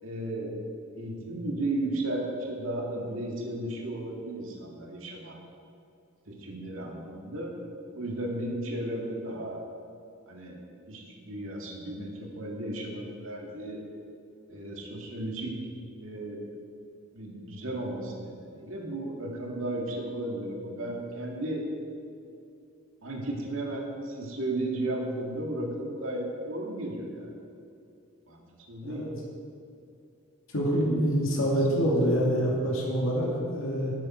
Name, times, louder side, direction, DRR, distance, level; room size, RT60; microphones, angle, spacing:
voice 1, 0.0-0.6 1.0-5.4 6.3-7.5 7.9-9.6 10.3-10.6 10.9-13.8 14.5-15.6 16.0-16.5 17.1-21.7 23.0-27.3 28.3-29.1 31.3-31.6, right 1 dB, 75° right, 0 dB, 2.0 m, -34 dB
voice 2, 30.5-33.3 33.6-33.9, equal, 80° left, -3 dB, 2.3 m, -26 dB
12.0 x 9.3 x 4.3 m, 2.5 s
head